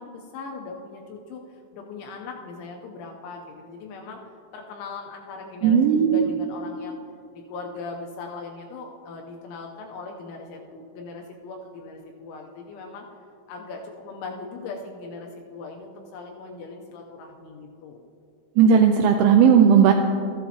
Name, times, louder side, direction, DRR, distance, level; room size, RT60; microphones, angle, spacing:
voice 1, 0.0-4.2 4.5-7.0 7.3-13.1 13.5-18.0, left 4 dB, 80° left, 1 dB, 2.9 m, -39 dB
voice 2, 5.6-6.4 18.6-19.9, right 7 dB, 85° right, 4 dB, 2.7 m, -16 dB
13.5 x 11.5 x 2.8 m, 2.4 s
omnidirectional pair, 6.0 m